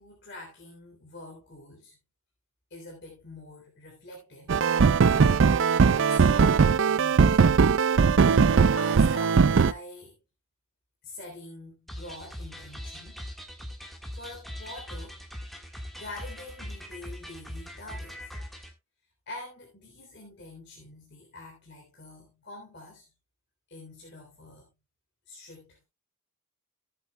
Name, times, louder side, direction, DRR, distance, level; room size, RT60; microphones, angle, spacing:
voice 1, 0.0-2.0 2.7-4.5 5.1-7.4 8.7-10.2 11.0-13.3 14.1-15.2 16.0-18.3 19.3-23.1 23.7-24.7 25.3-25.8, left 2 dB, 50° left, 3.3 m, -45 dB
sound 1, 4.5-9.7, right 5 dB, 60° right, 0.4 m, -20 dB
sound 2, 11.9-18.7, equal, ahead, 1.5 m, -41 dB
15.0 x 8.5 x 2.2 m
head